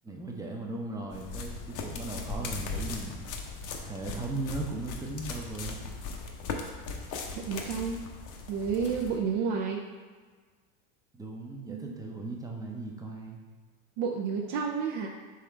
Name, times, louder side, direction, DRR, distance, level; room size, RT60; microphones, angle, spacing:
voice 1, 0.0-3.2 3.8-5.8 11.1-13.4, right 2 dB, 10° right, 0 dB, 0.6 m, -37 dB
sound 1, 1.1-9.2, left 4 dB, 45° left, 0.7 m, -38 dB
voice 2, 7.5-8.0 8.5-9.8 11.7-12.0 14.0-15.1, right 6 dB, 60° right, 0 dB, 0.6 m, -30 dB
3.7 x 3.1 x 4.4 m, 1.5 s
hypercardioid pair, 100°, 45 cm